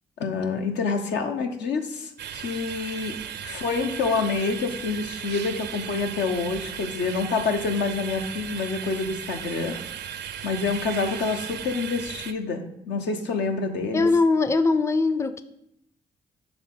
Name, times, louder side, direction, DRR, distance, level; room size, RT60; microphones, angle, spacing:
voice 1, 0.2-3.2 3.4-9.8 10.4-14.1, left 4 dB, 80° left, 4 dB, 0.8 m, -27 dB
sound 1, 2.2-12.3, right 9 dB, 75° right, 0.5 m, -36 dB
voice 2, 13.9-15.4, left 3 dB, 15° left, 12 dB, 0.4 m, -21 dB
7.1 x 3.4 x 5.3 m, 0.80 s
cardioid pair, 60°, 18 cm